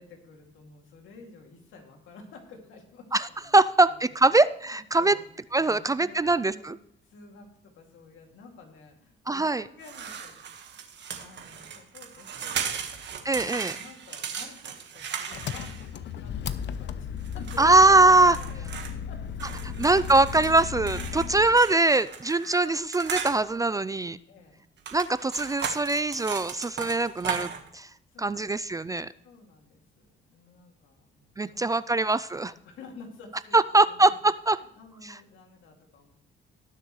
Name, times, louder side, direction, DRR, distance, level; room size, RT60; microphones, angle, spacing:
voice 1, 0.0-3.6 3.9-4.1 4.7-5.3 5.6-6.8 7.0-10.3 11.2-13.1 13.4-20.4 21.0-21.4 22.4-22.5 24.3-24.6 28.1-28.4 29.2-32.1 32.4-34.1 34.5-36.1, left 4 dB, 80° left, 2 dB, 2.5 m, -51 dB
voice 2, 3.1-5.2 5.5-6.8 9.3-9.6 13.3-13.7 17.6-18.4 19.8-24.2 24.9-27.9 28.2-29.1 31.4-32.5 33.5-34.6 35.0-35.1, right 2 dB, 15° right, 16 dB, 0.3 m, -22 dB
sound 1, 9.8-16.1 17.2-18.9 19.4-23.4 24.8-27.7, right 7 dB, 60° right, 1.5 m, -37 dB
Engine, 15.3-21.6, left 8 dB, 65° left, 0.7 m, -35 dB
19.0 x 6.6 x 3.2 m, 0.72 s
cardioid pair, 90°, 20 cm